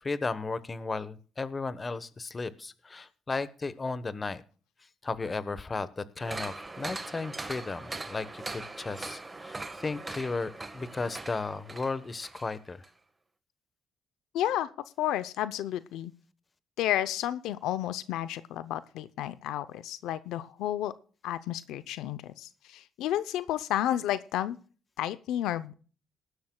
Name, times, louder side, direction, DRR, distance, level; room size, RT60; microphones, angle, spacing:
voice 1, 0.0-4.4 5.0-12.8, left 3 dB, 30° left, 14 dB, 1.1 m, -35 dB
sound 1, 6.2-12.5 12.8-12.9, right 2 dB, 20° right, 1.4 m, -41 dB
voice 2, 14.3-14.7 15.0-16.1 16.8-20.9 21.2-24.6 25.0-25.7, left 12 dB, 90° left, 15 dB, 0.6 m, -31 dB
19.5 x 11.5 x 2.3 m, 0.39 s
cardioid pair, 90°, 0 cm